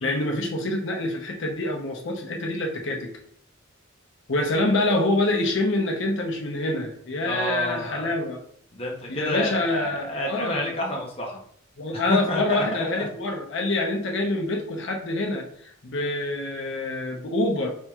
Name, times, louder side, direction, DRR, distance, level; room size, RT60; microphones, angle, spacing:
voice 1, 0.0-3.1 4.3-8.4 9.1-10.7 11.8-17.7, left 2 dB, 60° left, 1 dB, 0.8 m, -26 dB
voice 2, 7.2-8.1 8.7-11.4 11.9-13.0, left 1 dB, 30° left, -1 dB, 0.8 m, -29 dB
4.6 x 4.4 x 2.4 m, 0.63 s
head